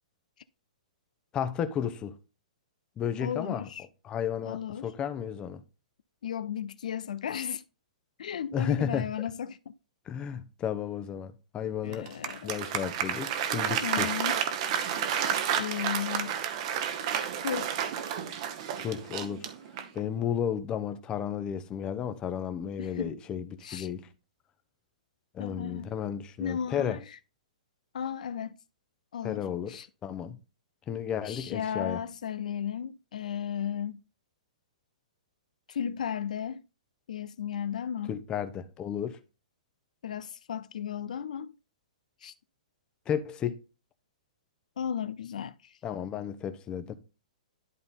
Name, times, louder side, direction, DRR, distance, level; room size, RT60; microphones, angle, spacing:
voice 1, 1.3-2.2 3.0-3.7 4.0-5.6 8.5-9.3 10.1-12.1 12.4-14.1 18.8-19.5 19.9-24.1 25.3-27.0 29.2-29.8 30.0-30.4 30.9-32.0 38.1-39.2 43.1-43.6 45.8-46.9, left 8 dB, 20° left, 0.8 m, -33 dB
voice 2, 3.2-3.9 4.4-4.9 6.2-7.6 8.2-9.7 11.8-12.5 13.8-14.4 15.5-16.4 17.4-17.8 22.8-23.2 23.6-23.9 25.4-25.9 26.4-27.2 27.9-28.6 29.1-29.4 29.7-29.9 31.2-34.0 35.7-36.6 37.1-38.2 40.0-41.5 42.2-42.3 44.8-46.0, left 8 dB, 75° left, 0.4 m, -35 dB
Applause, 11.9-20.1, right 8 dB, 50° right, 1.1 m, -31 dB
11.5 x 3.9 x 3.7 m
hypercardioid pair, 135°, 4 cm